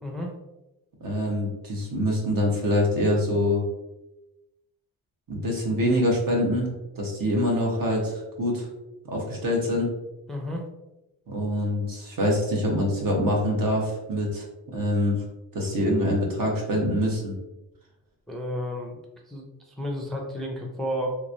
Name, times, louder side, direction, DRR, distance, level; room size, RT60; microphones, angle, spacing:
voice 1, 0.0-0.3 10.3-10.7 18.3-19.0 19.3-21.1, equal, ahead, 0 dB, 0.4 m, -32 dB
voice 2, 1.0-3.6 5.3-8.7 9.0-9.9 11.3-15.2 15.5-17.3, equal, 60° right, -1 dB, 1.2 m, -25 dB
3.3 x 3.0 x 2.6 m, 0.98 s
cardioid pair, 105°, 37 cm